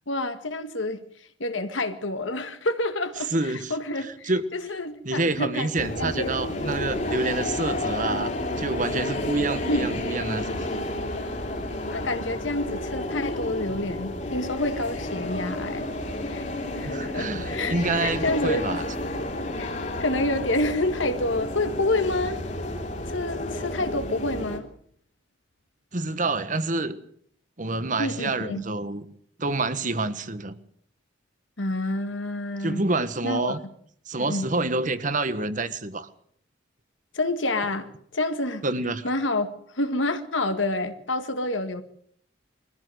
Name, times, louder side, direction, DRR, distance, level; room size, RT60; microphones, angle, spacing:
voice 1, 0.1-1.0 1.4-5.7 6.0-6.4 9.7-9.9 11.9-15.9 16.3-16.4 16.7-18.7 19.6-19.7 20.0-22.4 23.1-24.7 28.0-28.6 31.6-32.8 33.2-33.6 34.2-34.5 37.1-38.6 39.0-41.8, left 2 dB, 80° left, 1.9 m, -28 dB
voice 2, 3.3-3.7 4.3-4.4 5.0-10.7 16.8-18.8 25.9-27.0 27.6-29.0 29.4-30.6 32.6-33.6 34.1-36.1 38.6-39.1, right 2 dB, 40° right, 1.3 m, -27 dB
sound 1, 5.8-24.6, left 1 dB, 40° left, 2.9 m, -31 dB
22.5 x 15.0 x 7.9 m
head